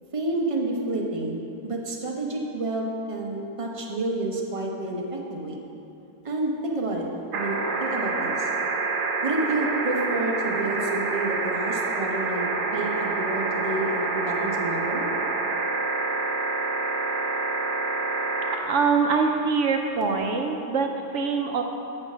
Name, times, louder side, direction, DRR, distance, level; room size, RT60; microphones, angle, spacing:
voice 1, 0.1-5.6 6.2-7.1 7.3-8.5 9.2-15.1, right 2 dB, 45° right, -1 dB, 0.4 m, -29 dB
sound 1, 7.3-18.6 20.0-20.1, right 3 dB, 80° right, 1.4 m, -27 dB
voice 2, 18.6-21.6, right 5 dB, 65° right, 3 dB, 0.8 m, -24 dB
8.7 x 4.4 x 6.1 m, 3.0 s
omnidirectional pair, 1.7 m